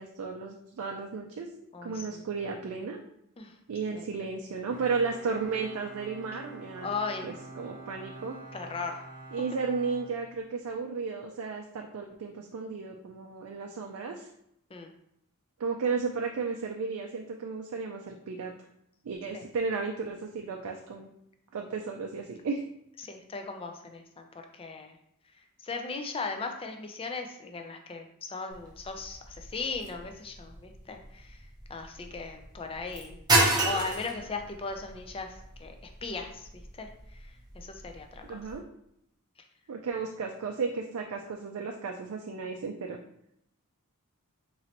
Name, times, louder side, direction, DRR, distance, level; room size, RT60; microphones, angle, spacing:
voice 1, 0.0-1.5 1.8-3.0 3.7-6.9 7.2-8.4 9.3-14.3 15.6-18.5 19.0-21.1 21.5-22.6 38.3-38.6 39.7-43.0, right 4 dB, 70° right, 2 dB, 0.4 m, -34 dB
voice 2, 1.7-2.2 3.4-3.5 4.0-4.1 6.8-7.4 8.5-9.0 14.7-14.9 19.3-19.4 23.0-25.0 25.6-31.4 31.7-33.2 33.6-35.8 36.0-36.5 36.8-36.9 37.2-38.4, left 4 dB, 25° left, 5 dB, 0.4 m, -37 dB
Bowed string instrument, 4.7-10.9, right 2 dB, 40° right, 1.0 m, -47 dB
sound 1, 28.5-38.6, right 2 dB, 20° right, 0.7 m, -32 dB
3.9 x 3.1 x 2.9 m, 0.76 s
head